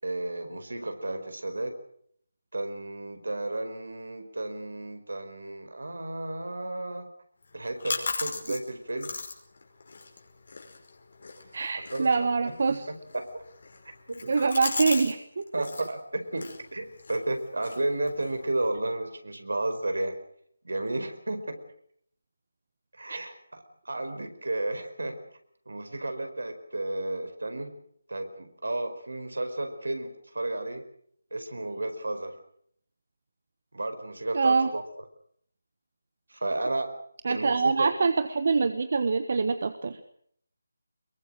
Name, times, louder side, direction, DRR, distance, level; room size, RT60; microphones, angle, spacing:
voice 1, 0.0-1.7 2.5-7.1 7.5-9.1 11.7-13.4 14.1-14.3 15.5-20.1 20.6-21.6 22.9-25.1 25.7-27.7 28.1-30.8 31.3-32.3 33.7-34.8 36.3-36.9 37.3-37.9, right 2 dB, 70° right, 7 dB, 4.7 m, -33 dB
sound 1, 7.4-15.2 15.4-15.9 16.3-18.7, left 3 dB, 55° left, 5.3 m, -38 dB
voice 2, 11.5-12.9 14.3-15.4 23.1-23.2 34.3-34.7 37.2-40.0, right 4 dB, 50° right, 11 dB, 1.3 m, -25 dB
24.0 x 22.5 x 6.5 m, 0.66 s
figure-of-eight pair, 155°, 0 cm